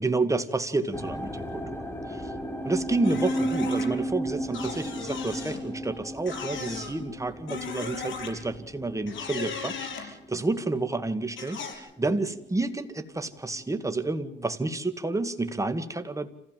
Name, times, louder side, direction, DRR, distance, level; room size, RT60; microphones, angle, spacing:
voice 1, 0.0-2.3 2.6-16.3, right 3 dB, 15° right, 9 dB, 1.9 m, -30 dB
sound 1, 0.9-12.1 12.3-13.0 13.6-13.7, right 1 dB, 10° left, 2.4 m, -34 dB
sound 2, 3.0-3.9 4.5-5.6 6.3-6.9 7.5-8.3 9.1-10.1 11.4-11.8, left 5 dB, 70° left, 6.2 m, -36 dB
27.0 x 15.5 x 7.6 m, 0.82 s
cardioid pair, 90°, 20 cm